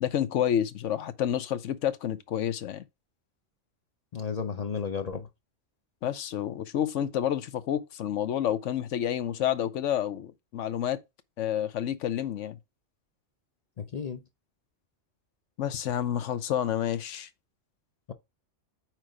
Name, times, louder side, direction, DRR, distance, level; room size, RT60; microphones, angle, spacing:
voice 1, 0.0-2.8 6.0-11.0 11.4-12.6 15.6-17.3, left 10 dB, 75° left, 1.0 m, -29 dB
voice 2, 4.1-5.3 13.8-14.2, left 6 dB, 45° left, 0.6 m, -33 dB
9.1 x 3.1 x 4.9 m
omnidirectional pair, 1.3 m